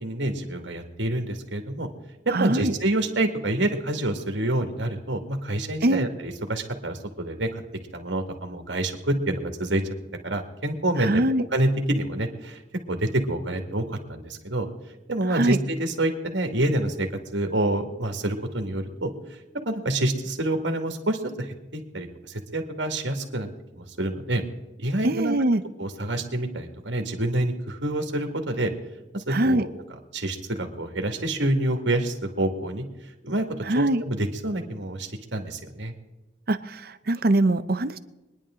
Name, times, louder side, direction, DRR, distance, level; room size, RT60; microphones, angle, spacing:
voice 1, 0.0-1.9 2.4-7.6 7.9-9.8 10.2-12.6 12.9-14.7 15.1-17.1 17.3-19.1 19.7-23.5 23.8-24.4 24.8-25.3 25.8-28.7 29.1-29.7 30.1-32.8 33.2-33.4 33.7-35.9, right 1 dB, 75° right, 5 dB, 2.2 m, -27 dB
voice 2, 2.3-2.7 5.8-6.1 11.0-11.4 15.3-15.6 25.0-25.6 29.3-29.6 33.7-34.0 36.5-38.0, right 1 dB, 55° right, 11 dB, 0.8 m, -23 dB
25.0 x 10.5 x 3.8 m, 1.1 s
head